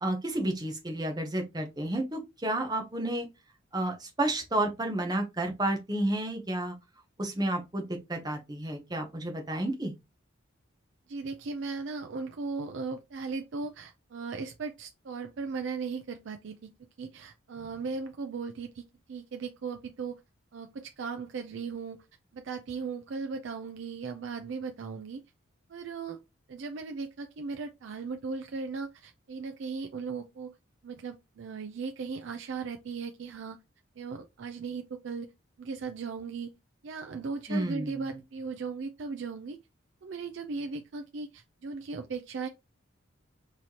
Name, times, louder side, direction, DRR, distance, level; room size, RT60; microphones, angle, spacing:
voice 1, 0.0-3.3 3.7-6.8 7.2-9.9 37.5-38.2, right 1 dB, 20° right, 0.7 m, -31 dB
voice 2, 11.1-16.7 17.0-18.8 19.1-20.1 20.5-22.0 22.3-25.2 25.7-26.2 26.5-30.6 30.8-33.6 34.0-35.3 35.6-36.5 36.8-39.6 40.0-42.5, right 4 dB, 60° right, 0.4 m, -37 dB
4.1 x 3.1 x 2.8 m
head